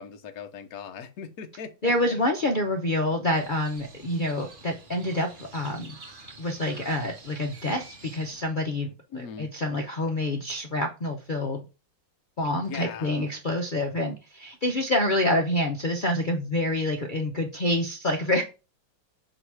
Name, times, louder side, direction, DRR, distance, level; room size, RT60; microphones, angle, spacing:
voice 1, 0.0-2.1 9.1-9.5 12.7-13.3, left 6 dB, 55° left, 7 dB, 1.2 m, -39 dB
voice 2, 1.8-6.0 6.4-8.9 9.4-11.6 12.4-18.4, left 1 dB, 85° left, 2 dB, 0.4 m, -27 dB
Crow, 3.3-8.5, right 3 dB, 40° right, 0.8 m, -48 dB
7.7 x 2.9 x 4.8 m, 0.31 s
omnidirectional pair, 2.1 m